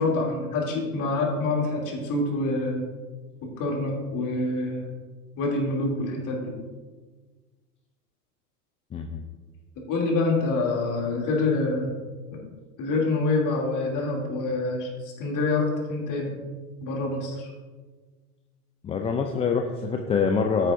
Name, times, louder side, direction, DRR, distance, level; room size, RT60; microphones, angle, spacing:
voice 1, 0.0-2.8 3.6-4.9 5.4-6.5 9.9-11.9 12.8-16.4 16.8-17.5, left 2 dB, 40° left, -1 dB, 3.0 m, -26 dB
voice 2, 8.9-9.2 18.8-20.7, left 5 dB, 15° left, 4 dB, 0.4 m, -25 dB
14.5 x 7.4 x 2.6 m, 1.4 s
hypercardioid pair, 95°, 46 cm